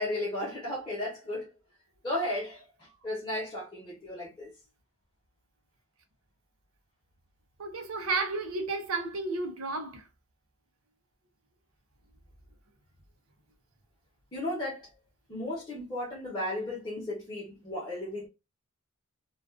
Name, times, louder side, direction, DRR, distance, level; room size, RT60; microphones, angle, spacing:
voice 1, 0.0-1.5 2.0-2.6 3.0-4.5 14.3-14.9 15.3-18.3, left 1 dB, 20° left, 0.8 m, -34 dB
voice 2, 7.6-10.1, right 3 dB, 80° right, 0.6 m, -32 dB
2.3 x 2.3 x 2.3 m
head